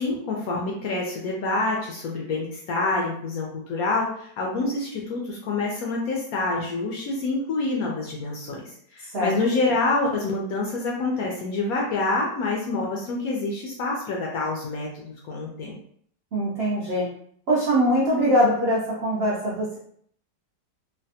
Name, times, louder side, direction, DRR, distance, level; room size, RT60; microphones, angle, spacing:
voice 1, 0.0-15.8, left 3 dB, 70° left, -2 dB, 0.9 m, -27 dB
voice 2, 9.0-9.3 16.3-17.1 17.5-19.8, equal, 70° right, -6 dB, 0.5 m, -22 dB
3.3 x 2.2 x 2.7 m, 0.63 s
omnidirectional pair, 1.9 m